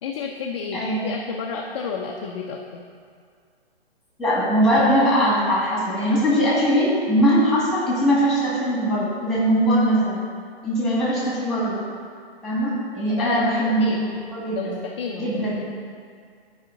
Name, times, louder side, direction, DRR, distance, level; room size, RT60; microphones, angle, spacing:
voice 1, 0.0-2.8 13.2-14.1 14.5-15.5, left 5 dB, 30° left, -1 dB, 0.5 m, -32 dB
voice 2, 0.7-1.1 4.2-10.3 10.6-11.8 12.4-14.8 15.1-15.6, equal, ahead, -6 dB, 2.0 m, -21 dB
11.5 x 4.9 x 3.9 m, 2.2 s
figure-of-eight pair, 135°, 32 cm